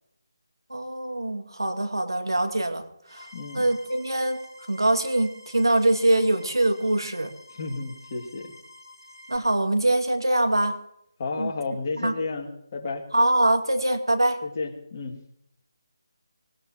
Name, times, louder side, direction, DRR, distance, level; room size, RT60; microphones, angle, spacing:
voice 1, 0.7-2.8 3.1-4.4 4.7-7.3 9.3-10.8 11.4-11.5 12.0-12.1 13.1-14.4, right 1 dB, 85° right, 6 dB, 2.2 m, -23 dB
sound 1, 3.1-9.4, left 1 dB, 60° left, 4.8 m, -49 dB
voice 2, 3.3-3.8 7.6-8.5 11.2-13.1 14.4-15.2, left 3 dB, 35° left, 2 dB, 2.3 m, -32 dB
25.0 x 19.0 x 3.0 m, 0.77 s
figure-of-eight pair, 155°, 2 cm